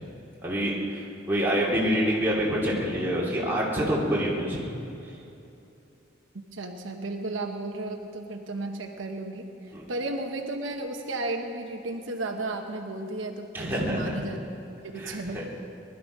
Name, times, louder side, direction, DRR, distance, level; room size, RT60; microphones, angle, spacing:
voice 1, 0.4-4.7 9.7-9.8 13.5-14.2 15.0-15.4, equal, 10° right, -6 dB, 2.7 m, -27 dB
voice 2, 6.5-9.5 9.9-14.4 14.9-15.4, right 2 dB, 80° right, 3 dB, 1.1 m, -33 dB
20.0 x 12.0 x 5.4 m, 2.8 s
head